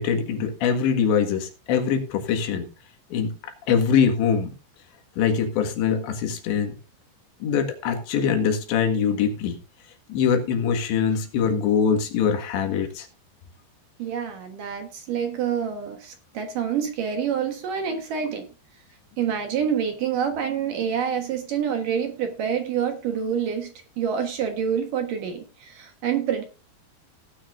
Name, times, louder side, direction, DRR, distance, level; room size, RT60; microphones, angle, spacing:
voice 1, 0.0-2.7 3.1-3.3 3.7-4.5 5.2-6.7 7.4-9.6 10.1-13.1, left 7 dB, 85° left, 4.0 m, -23 dB
voice 2, 14.0-18.5 19.2-23.7 24.0-26.4, right 8 dB, 60° right, 2.5 m, -27 dB
17.5 x 9.2 x 2.6 m
omnidirectional pair, 5.0 m